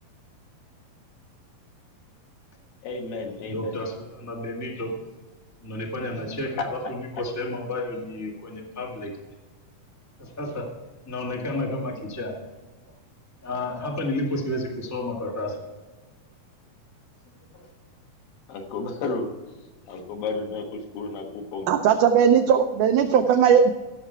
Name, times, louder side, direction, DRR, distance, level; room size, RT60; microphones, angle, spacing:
voice 1, 2.8-3.7 18.5-19.3 19.9-21.7, left 3 dB, 75° left, 2 dB, 3.1 m, -32 dB
voice 2, 3.4-4.9 5.6-9.1 10.2-10.7 11.1-12.3 13.4-15.7 17.5-17.7, left 1 dB, 25° left, -2 dB, 0.3 m, -31 dB
voice 3, 21.7-23.7, right 7 dB, 85° right, 6 dB, 1.8 m, -18 dB
15.5 x 6.8 x 4.6 m, 1.2 s
omnidirectional pair, 4.3 m